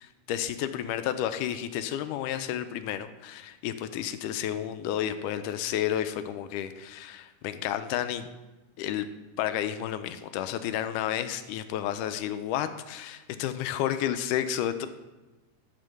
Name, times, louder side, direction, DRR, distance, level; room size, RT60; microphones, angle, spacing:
voice 1, 0.3-8.3 8.8-9.1 9.4-14.9, left 11 dB, 85° left, 10 dB, 2.1 m, -31 dB
12.5 x 4.5 x 6.5 m, 1.1 s
omnidirectional pair, 3.6 m